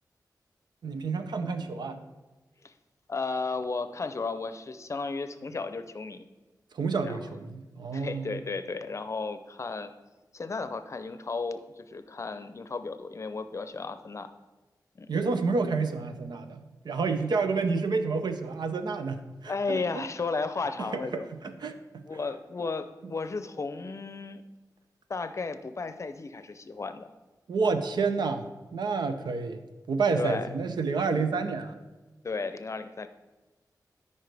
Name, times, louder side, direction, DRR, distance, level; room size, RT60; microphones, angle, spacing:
voice 1, 0.8-2.0 6.7-8.4 15.1-20.1 20.8-22.0 27.5-29.6 29.9-31.8, right 4 dB, 85° right, 8 dB, 0.7 m, -29 dB
voice 2, 3.1-6.3 7.0-7.2 7.9-9.9 10.3-14.3 15.0-15.2 19.5-21.3 22.0-24.4 25.1-27.1 30.2-30.5 32.2-33.1, left 4 dB, 45° left, 10 dB, 0.6 m, -34 dB
13.0 x 5.4 x 3.4 m, 1.2 s
wide cardioid pair, 105°, 7 cm